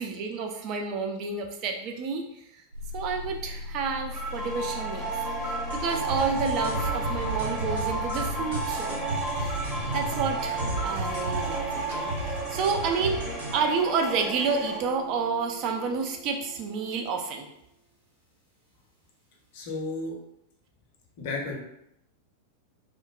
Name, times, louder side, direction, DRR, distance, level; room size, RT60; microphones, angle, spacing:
voice 1, 0.0-2.2 2.9-5.1 5.4-9.0 9.4-9.6 9.9-13.2 13.5-17.5, right 5 dB, 40° right, 3 dB, 0.4 m, -30 dB
sound 1, 2.7-17.2, left 2 dB, 85° right, 1.3 m, -41 dB
sound 2, 4.1-14.8, right 2 dB, 5° right, 0.7 m, -33 dB
sound 3, 5.7-13.5, right 2 dB, 65° right, 1.0 m, -34 dB
voice 2, 19.5-20.2 21.2-21.6, left 3 dB, 50° left, 0 dB, 0.6 m, -32 dB
3.1 x 2.0 x 2.3 m, 0.80 s
figure-of-eight pair, 90°, 0 cm